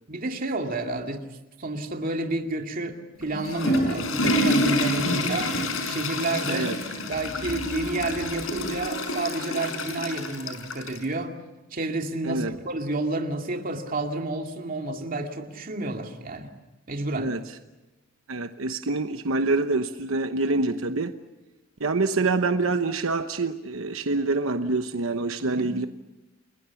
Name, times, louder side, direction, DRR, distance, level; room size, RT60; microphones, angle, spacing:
voice 1, 0.1-1.3 1.6-5.6 5.8-6.7 7.1-11.4 11.7-16.5 16.9-17.3 25.4-25.7, right 2 dB, 45° right, 2.5 m, -30 dB
Water / Toilet flush, 3.2-11.0, left 1 dB, 80° left, 5.2 m, -27 dB
voice 2, 12.2-12.6 17.2-17.4 18.3-21.1 21.8-25.9, right 3 dB, 80° right, 1.0 m, -26 dB
30.0 x 22.0 x 7.1 m
head